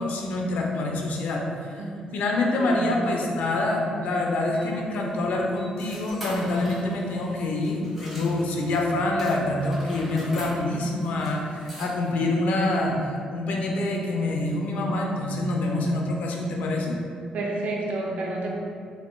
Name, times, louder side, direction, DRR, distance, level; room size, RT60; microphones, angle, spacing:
voice 1, 0.0-1.4 2.1-17.0, left 2 dB, 80° left, 0 dB, 0.4 m, -26 dB
sound 1, 4.1-8.8 9.2-12.3, equal, 5° right, 1.4 m, -43 dB
voice 2, 17.3-18.5, right 2 dB, 65° right, -2 dB, 0.5 m, -29 dB
3.3 x 2.9 x 2.2 m, 2.3 s
cardioid pair, 85°, 3 cm